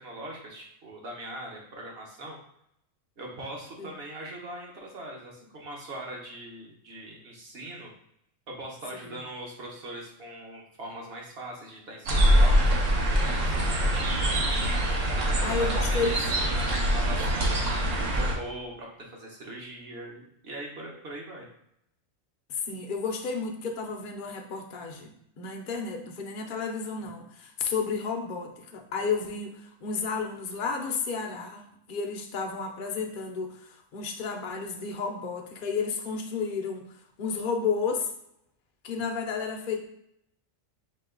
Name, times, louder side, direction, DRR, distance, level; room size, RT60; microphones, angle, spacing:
voice 1, 0.0-2.4 3.2-7.9 8.5-14.6 15.1-21.5, right 1 dB, 50° right, -1 dB, 1.2 m, -41 dB
sound 1, 12.1-18.3, equal, 70° right, 1.2 m, -24 dB
voice 2, 15.4-16.1 22.5-31.6 31.9-38.1 38.8-39.8, left 5 dB, 50° left, 3 dB, 0.7 m, -32 dB
4.6 x 2.8 x 3.7 m, 0.74 s
omnidirectional pair, 1.4 m